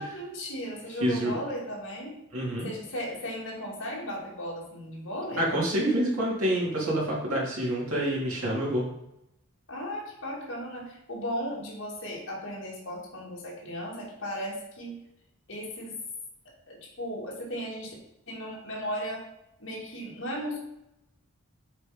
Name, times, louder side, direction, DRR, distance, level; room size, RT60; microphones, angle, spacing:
voice 1, 0.0-2.1 2.6-5.5 9.7-15.0 15.5-16.0 16.7-18.0 18.3-19.2 19.6-20.6, equal, 55° left, -3 dB, 2.6 m, -36 dB
voice 2, 1.0-1.3 2.3-2.7 5.3-8.8, right 1 dB, 80° right, -5 dB, 3.2 m, -27 dB
7.5 x 4.4 x 5.2 m, 0.84 s
head